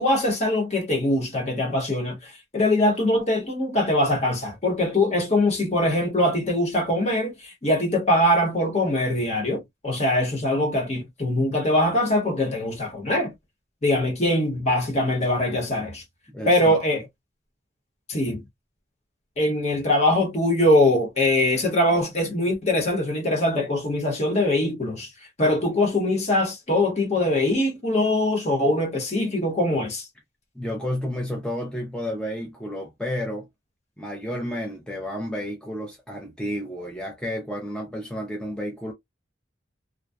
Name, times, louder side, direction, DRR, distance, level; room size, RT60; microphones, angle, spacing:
voice 1, 0.0-13.3 13.8-16.0 16.4-17.0 18.1-18.4 19.4-25.1 25.4-30.1, left 1 dB, 35° left, 0.9 m, -22 dB
voice 2, 16.3-16.8 30.6-33.5 34.0-38.9, equal, 5° left, 0.5 m, -31 dB
2.6 x 2.1 x 2.3 m
head